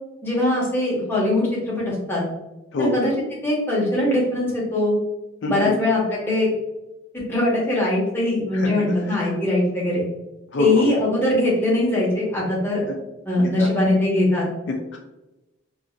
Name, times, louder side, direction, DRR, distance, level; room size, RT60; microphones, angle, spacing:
voice 1, 0.2-2.2 2.8-3.1 3.4-5.0 5.5-6.5 7.1-10.0 10.6-12.8 13.3-14.5, left 1 dB, 10° left, -5 dB, 0.7 m, -21 dB
voice 2, 5.4-5.7 8.5-8.7 10.5-10.9 12.9-13.0 13.4-13.7 14.7-15.0, left 2 dB, 60° left, 1 dB, 0.3 m, -25 dB
2.7 x 2.5 x 2.5 m, 1.0 s
head